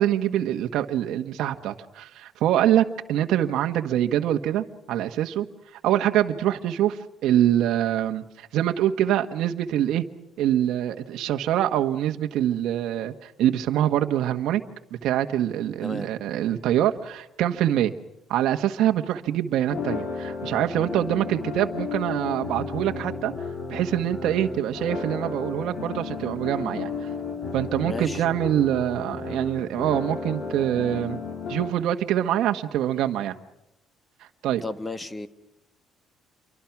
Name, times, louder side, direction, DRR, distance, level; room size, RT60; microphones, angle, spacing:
voice 1, 0.0-5.5 5.7-10.0 10.4-14.6 14.9-17.9 18.3-23.3 23.7-27.1 27.5-31.2 31.5-33.3 34.4-34.6, right 11 dB, 65° right, 5 dB, 1.4 m, -24 dB
voice 2, 15.8-16.1 27.8-28.2 34.6-35.3, left 2 dB, 10° left, 11 dB, 1.5 m, -33 dB
sound 1, 19.7-31.7, left 5 dB, 45° left, 2.9 m, -33 dB
28.0 x 24.0 x 6.0 m, 0.89 s
cardioid pair, 160°, 0 cm